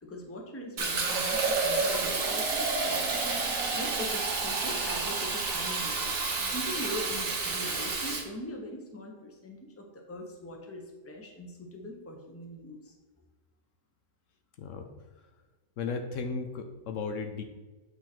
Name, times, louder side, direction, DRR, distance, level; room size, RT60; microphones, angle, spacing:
voice 1, 0.0-3.2 3.7-6.2 6.5-12.9, left 1 dB, 10° left, 2 dB, 0.8 m, -41 dB
Fill (with liquid), 0.8-8.2, right 3 dB, 80° right, 1.5 m, -30 dB
voice 2, 15.8-17.4, left 4 dB, 70° left, 6 dB, 1.0 m, -35 dB
8.3 x 3.7 x 4.4 m, 1.2 s
omnidirectional pair, 1.4 m